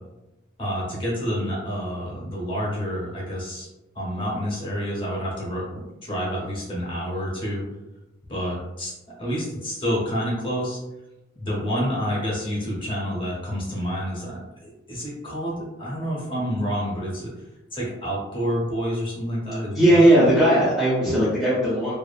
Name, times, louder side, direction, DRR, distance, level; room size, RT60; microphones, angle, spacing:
voice 1, 0.6-3.7 3.9-7.6 8.3-8.9 9.2-10.8 11.3-17.3 17.7-20.0, equal, 25° left, -5 dB, 0.8 m, -28 dB
voice 2, 19.7-21.9, right 1 dB, ahead, -11 dB, 0.5 m, -17 dB
2.6 x 2.4 x 2.3 m, 0.98 s
head